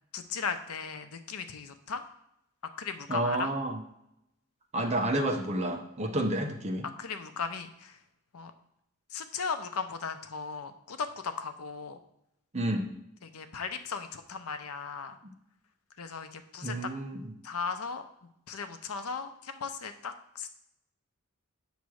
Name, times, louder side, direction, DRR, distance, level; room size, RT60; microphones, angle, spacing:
voice 1, 0.1-2.0 2.8-3.5 7.0-8.0 8.3-8.5 9.1-12.0 13.3-15.2 16.0-16.9 17.4-18.0 18.5-20.5, left 5 dB, 85° left, 9 dB, 0.7 m, -37 dB
voice 2, 3.1-3.8 4.7-6.9 12.5-12.9 15.2-15.3 16.6-17.3, right 1 dB, 30° right, 4 dB, 0.7 m, -30 dB
8.2 x 3.1 x 6.3 m, 0.82 s
head